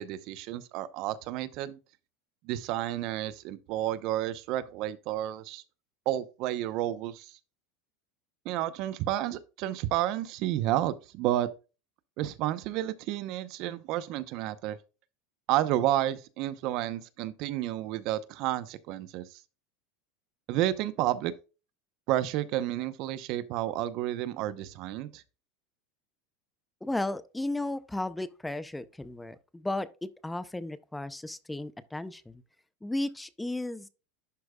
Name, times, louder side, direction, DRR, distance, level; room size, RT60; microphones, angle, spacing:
voice 1, 0.0-1.8 2.4-5.6 6.1-7.3 8.4-11.5 12.2-14.8 15.5-19.2 20.5-21.3 22.1-25.2, right 13 dB, 55° right, 0.7 m, -31 dB
voice 2, 26.8-32.4 32.8-33.9, left 2 dB, 5° left, 0.5 m, -34 dB
11.5 x 4.6 x 2.2 m
supercardioid pair, 130°, 0 cm